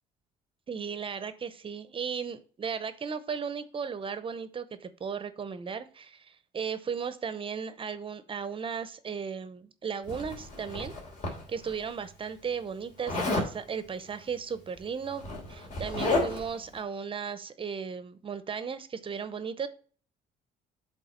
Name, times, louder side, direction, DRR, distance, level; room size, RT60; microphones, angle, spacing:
voice 1, 0.7-10.9 11.5-19.7, right 6 dB, 30° right, 13 dB, 0.7 m, -36 dB
Zipper (clothing), 10.1-11.7 13.1-13.5 14.7-14.8 15.1-16.6, left 2 dB, 50° left, 2.8 m, -31 dB
8.0 x 3.7 x 5.0 m, 0.42 s
cardioid pair, 110°, 17 cm